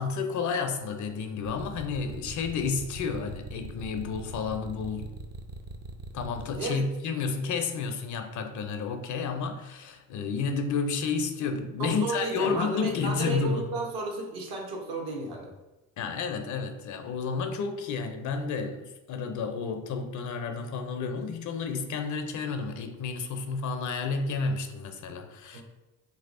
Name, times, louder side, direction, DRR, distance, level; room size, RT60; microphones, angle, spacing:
voice 1, 0.0-5.2 6.1-13.7 16.0-25.6, left 5 dB, 50° left, 6 dB, 0.5 m, -31 dB
sound 1, 1.4-6.6, right 2 dB, 25° right, 0.4 m, -41 dB
voice 2, 11.8-15.5 25.5-25.6, right 2 dB, 65° right, 0 dB, 0.9 m, -33 dB
3.1 x 2.7 x 2.5 m, 1.1 s
hypercardioid pair, 60°, 40 cm